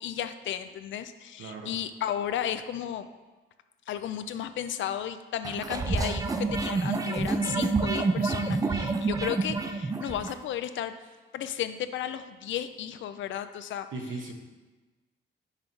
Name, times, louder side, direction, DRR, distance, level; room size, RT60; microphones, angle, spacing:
voice 1, 0.0-3.1 3.9-10.9 11.3-13.9, left 10 dB, 75° left, 11 dB, 0.4 m, -34 dB
voice 2, 1.4-1.8 13.9-14.3, right 3 dB, 90° right, 2 dB, 1.0 m, -37 dB
sound 1, 5.4-10.4, right 3 dB, 20° right, 0.4 m, -28 dB
5.7 x 4.5 x 5.1 m, 1.3 s
cardioid pair, 130°, 20 cm